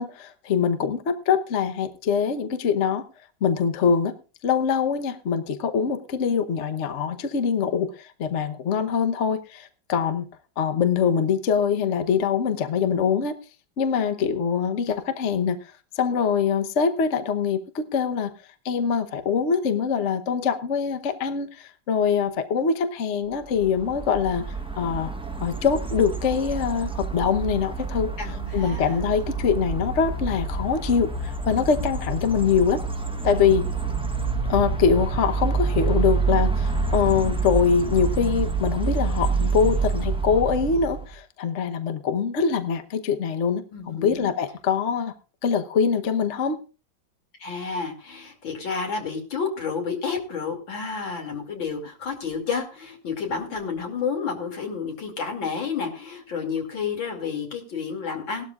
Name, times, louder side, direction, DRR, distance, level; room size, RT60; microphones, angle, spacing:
voice 1, 0.0-3.0 3.4-4.1 4.4-10.3 10.6-13.4 13.8-15.6 16.0-18.3 18.6-24.4 24.8-25.1 25.4-32.8 33.2-33.6 34.5-45.1 45.4-46.6, left 6 dB, 45° left, 8 dB, 1.1 m, -23 dB
sound 1, 23.5-41.1, right 4 dB, 10° right, 0.3 m, -27 dB
voice 2, 28.2-29.0 43.7-44.3 47.4-58.4, left 5 dB, 90° left, 3 dB, 3.4 m, -30 dB
18.5 x 12.5 x 2.4 m, 0.34 s
omnidirectional pair, 2.0 m